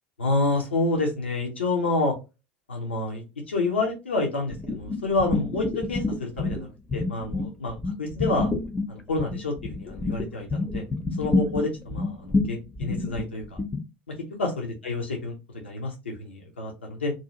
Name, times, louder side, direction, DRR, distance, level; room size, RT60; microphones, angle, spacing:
voice 1, 0.2-2.1 2.7-8.5 8.9-10.8 11.2-13.4 14.4-17.1, left 2 dB, 85° left, 0 dB, 0.7 m, -28 dB
sound 1, 4.5-6.6 6.9-13.8, left 3 dB, 15° left, 0.5 m, -28 dB
2.6 x 2.3 x 2.9 m, 0.27 s
figure-of-eight pair, 75°, 6 cm